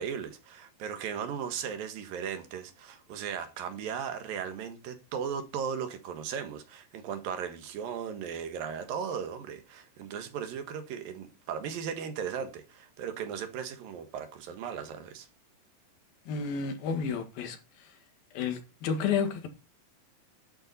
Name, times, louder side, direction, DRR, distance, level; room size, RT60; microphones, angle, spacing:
voice 1, 0.0-15.3, right 7 dB, 75° right, 3.2 m, -37 dB
voice 2, 16.3-18.0 18.3-19.5, left 6 dB, 90° left, 3.7 m, -31 dB
11.5 x 9.4 x 4.2 m
omnidirectional pair, 4.1 m